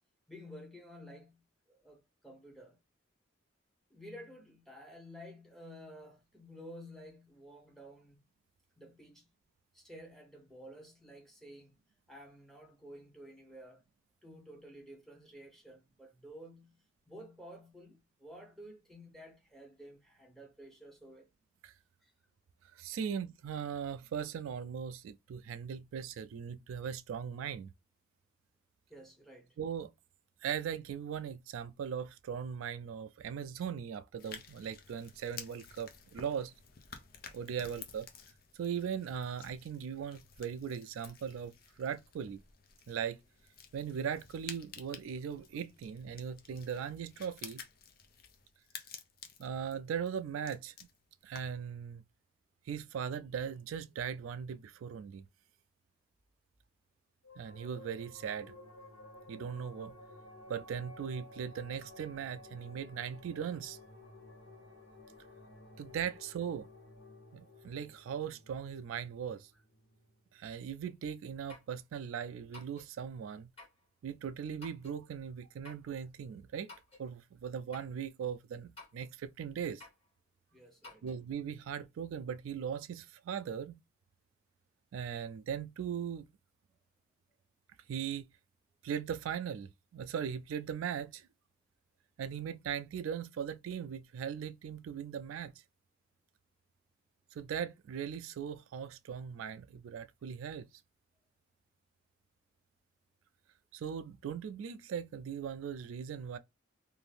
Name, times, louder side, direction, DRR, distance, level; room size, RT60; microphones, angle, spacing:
voice 1, 0.3-2.8 3.9-8.2 8.8-9.3 9.7-11.8 12.1-13.8 14.2-21.3 22.0-22.1 23.0-23.1 28.9-29.6 69.5-69.6 80.5-81.0, equal, ahead, 0.7 m, -52 dB
voice 2, 22.8-27.7 29.6-29.9 30.4-36.5 37.3-38.1 38.5-42.4 42.9-43.2 43.7-47.6 49.4-50.7 51.2-52.0 52.7-55.2 57.4-58.5 59.3-59.9 60.5-63.8 65.8-66.7 67.3-69.5 70.3-73.5 74.0-76.7 77.0-79.8 81.0-83.8 84.9-86.3 87.9-88.2 88.8-91.2 92.2-95.5 97.3-100.7 103.7-106.4, right 7 dB, 90° right, 0.3 m, -39 dB
sound 1, 34.2-51.7, left 7 dB, 50° left, 0.5 m, -52 dB
sound 2, 57.2-70.1, left 1 dB, 75° left, 0.9 m, -54 dB
sound 3, 70.8-70.9 71.5-71.7 72.5-72.9 73.6-73.8 74.6-75.0 75.6-75.9 76.7-77.1 77.7-78.0 78.8-79.1 79.8-80.1 80.8-81.2, left 3 dB, 30° left, 1.5 m, -53 dB
2.6 x 2.5 x 3.3 m
head